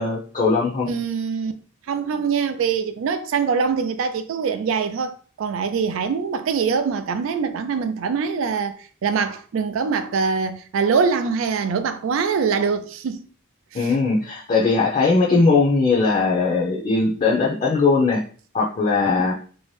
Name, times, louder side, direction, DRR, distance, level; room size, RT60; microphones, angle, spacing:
voice 1, 0.0-0.9 13.7-18.2 18.5-19.3, left 4 dB, 35° left, 0.5 m, -19 dB
voice 2, 0.9-1.5 1.9-5.1 5.4-8.7 9.0-13.2 19.2-19.3, right 5 dB, 65° right, 0.3 m, -23 dB
2.7 x 2.0 x 3.1 m
head